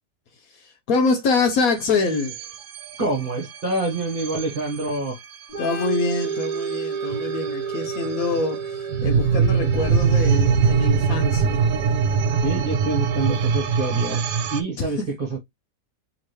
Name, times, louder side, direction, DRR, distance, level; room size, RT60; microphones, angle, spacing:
voice 1, 0.4-2.5 5.6-11.6 14.7-15.1, left 4 dB, 65° left, 1.0 m, -25 dB
sound 1, 1.5-14.6, right 6 dB, 65° right, 0.9 m, -24 dB
voice 2, 3.0-5.2 12.4-14.2 14.5-15.0 15.3-15.4, right 2 dB, 35° right, 1.1 m, -26 dB
Organ, 5.5-13.0, right 6 dB, 40° left, 2.8 m, -32 dB
4.9 x 3.0 x 2.9 m
omnidirectional pair, 1.9 m